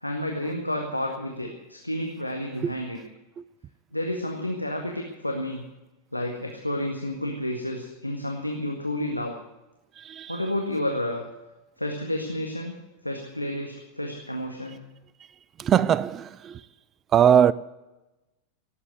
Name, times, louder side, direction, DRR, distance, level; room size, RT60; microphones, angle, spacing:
voice 1, 0.0-3.0 3.9-5.6 6.1-9.4 10.3-11.2 11.8-12.8 13.0-14.8, left 1 dB, 85° left, 1.8 m, -30 dB
voice 2, 10.0-10.4 15.6-16.6 17.1-17.5, right 9 dB, 25° right, 0.5 m, -21 dB
18.0 x 8.3 x 9.4 m
figure-of-eight pair, 90°, 0 cm